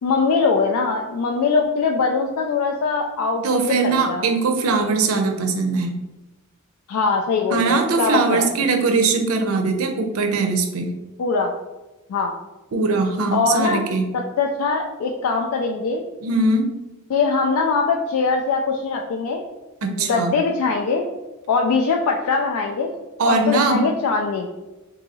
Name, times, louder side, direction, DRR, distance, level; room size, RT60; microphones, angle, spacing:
voice 1, 0.0-4.2 6.9-8.5 11.2-11.5 12.1-12.3 13.3-13.8 14.1-16.0 17.1-19.4 20.0-21.1 21.5-22.9 23.2-24.5, left 4 dB, 85° left, 2 dB, 0.3 m, -22 dB
voice 2, 3.4-6.0 7.5-10.9 12.7-14.1 16.2-16.7 19.8-20.3 23.2-23.8, right 3 dB, 70° right, 5 dB, 0.5 m, -21 dB
2.7 x 2.7 x 4.0 m, 1.1 s
head